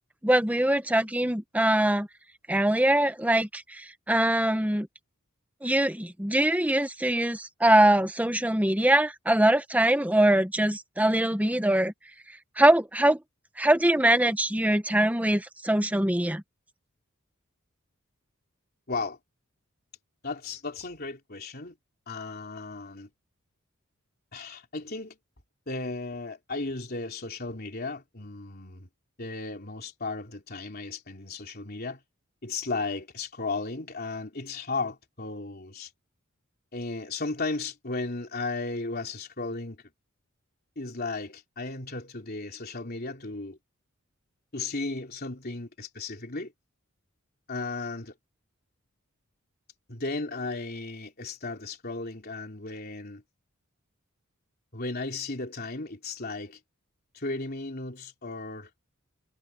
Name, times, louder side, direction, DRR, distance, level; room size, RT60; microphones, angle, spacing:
voice 1, 0.2-2.1 2.5-4.9 5.6-11.9 12.6-13.2 13.6-16.4, right 1 dB, 5° right, 1.1 m, -23 dB
voice 2, 18.9-19.2 20.2-21.8 22.1-23.1 24.3-25.2 25.7-28.9 29.2-32.0 32.4-35.9 36.7-39.8 40.8-43.6 44.5-46.5 47.5-48.1 49.9-53.2 54.7-56.6 57.1-58.9, left 3 dB, 45° left, 3.5 m, -35 dB
head